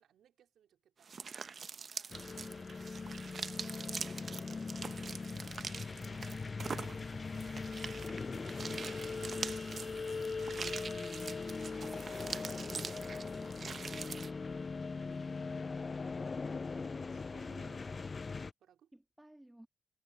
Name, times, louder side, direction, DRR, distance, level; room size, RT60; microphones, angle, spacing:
voice 1, 0.0-2.2 5.3-7.2 15.4-16.4 16.8-17.9 18.3-18.9, right 9 dB, 75° right, 3.3 m, -66 dB
sound 1, 1.0-14.3, right 5 dB, 50° right, 0.9 m, -44 dB
sound 2, 2.1-18.5, left 4 dB, 40° left, 0.4 m, -40 dB
voice 2, 17.4-17.8 18.9-19.7, right 1 dB, 10° right, 2.0 m, -58 dB
supercardioid pair, 50°, 0 cm